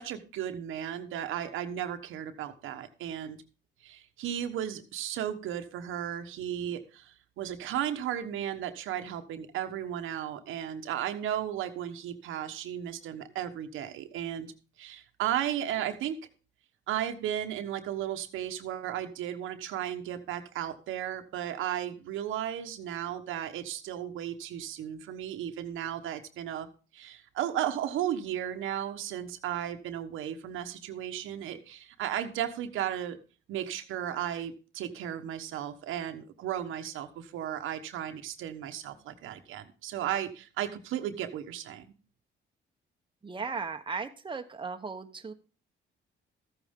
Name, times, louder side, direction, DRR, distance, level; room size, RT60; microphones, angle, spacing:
voice 1, 0.0-3.4 3.8-14.5 14.8-16.2 16.9-26.7 26.9-33.2 33.5-41.9, right 10 dB, 85° right, 6 dB, 1.2 m, -35 dB
voice 2, 43.2-45.3, right 5 dB, 25° right, 5 dB, 1.1 m, -36 dB
14.0 x 8.9 x 3.7 m, 0.35 s
cardioid pair, 90°, 20 cm